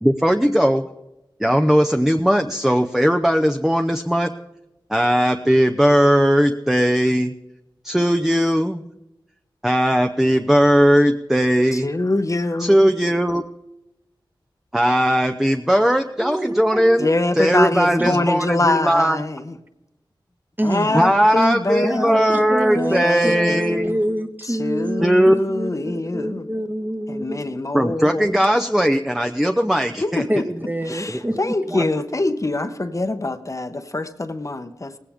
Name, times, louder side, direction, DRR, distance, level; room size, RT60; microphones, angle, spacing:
voice 1, 0.0-0.9 1.4-4.3 4.9-7.3 7.8-8.9 9.6-11.9 12.6-13.4 14.7-17.0 17.4-19.2 20.9-23.9 25.0-25.3 27.7-30.2, equal, 5° right, 0.7 m, -18 dB
voice 2, 11.7-12.9 17.0-19.5 20.6-23.8 24.6-26.5 27.1-28.4 30.0-30.5 30.9-34.9, left 2 dB, 40° left, 1.0 m, -24 dB
voice 3, 16.2-17.2 18.0-18.1 20.6-21.1 21.8-27.4 28.4-28.5 30.3-31.9, right 1 dB, 20° right, 1.3 m, -27 dB
18.5 x 16.0 x 3.6 m
wide cardioid pair, 75°, 9 cm